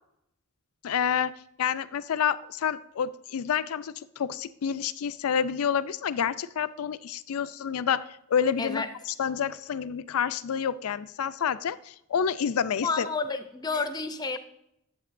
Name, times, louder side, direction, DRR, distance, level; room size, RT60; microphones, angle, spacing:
voice 1, 0.8-1.3 1.6-8.8 9.2-13.1, left 7 dB, 90° left, 15 dB, 0.4 m, -28 dB
voice 2, 12.8-14.4, left 4 dB, 20° left, 9 dB, 0.5 m, -30 dB
11.0 x 7.9 x 2.5 m, 0.78 s
head